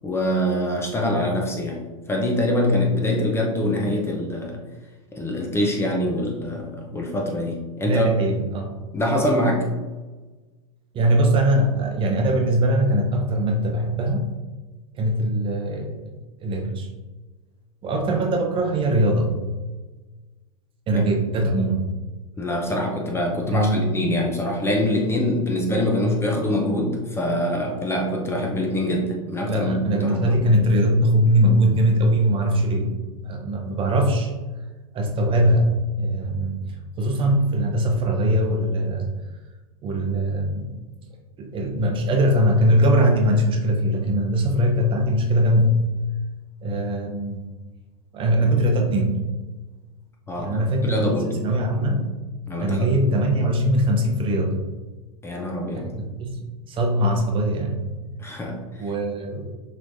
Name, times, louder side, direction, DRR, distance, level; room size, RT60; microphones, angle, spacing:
voice 1, 0.0-4.6 5.1-8.1 8.9-9.7 20.9-21.0 22.4-30.4 50.3-51.4 52.5-52.9 55.2-55.9 58.2-58.9, left 1 dB, 15° left, 0 dB, 0.7 m, -24 dB
voice 2, 7.8-8.7 10.9-14.3 15.0-16.0 16.4-16.9 17.8-19.4 20.9-21.8 23.5-23.9 29.5-32.9 33.2-34.3 34.9-36.6 37.0-39.0 39.8-40.8 41.4-45.9 46.6-47.4 48.1-49.2 50.4-51.1 51.4-52.1 52.6-54.6 55.7-57.9 58.5-59.5, equal, 30° right, 2 dB, 0.8 m, -21 dB
6.1 x 3.2 x 2.7 m, 1.2 s
hypercardioid pair, 105°, 18 cm